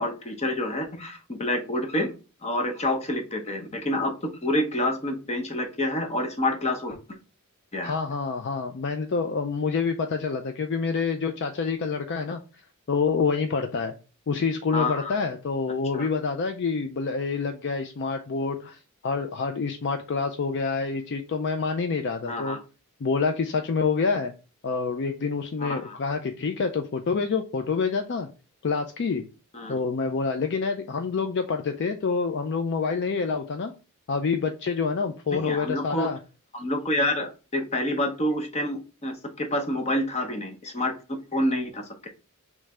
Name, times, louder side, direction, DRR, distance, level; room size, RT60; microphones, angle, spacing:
voice 1, 0.0-2.1 2.4-7.0 7.7-8.0 14.7-15.1 15.9-16.1 22.3-22.6 25.6-26.0 29.5-29.7 35.3-36.1 36.5-40.9 41.3-42.1, left 1 dB, 30° left, 5 dB, 0.8 m, -28 dB
voice 2, 7.8-12.4 12.9-13.9 14.3-22.6 23.0-24.3 24.6-28.3 28.6-29.2 29.7-33.7 34.1-36.2, left 5 dB, 50° left, 7 dB, 0.4 m, -27 dB
3.3 x 3.1 x 4.8 m, 0.33 s
head